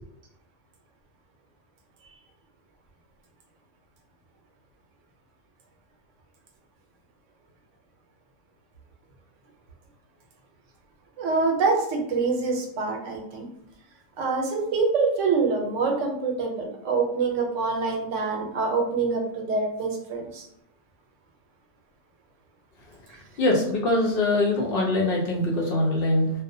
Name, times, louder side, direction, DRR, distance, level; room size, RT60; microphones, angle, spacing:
voice 1, 11.2-13.5 14.2-20.5, right 4 dB, 85° right, 1 dB, 1.0 m, -25 dB
voice 2, 23.4-26.3, left 2 dB, 60° left, -3 dB, 0.7 m, -23 dB
2.4 x 2.0 x 2.6 m, 0.78 s
omnidirectional pair, 1.2 m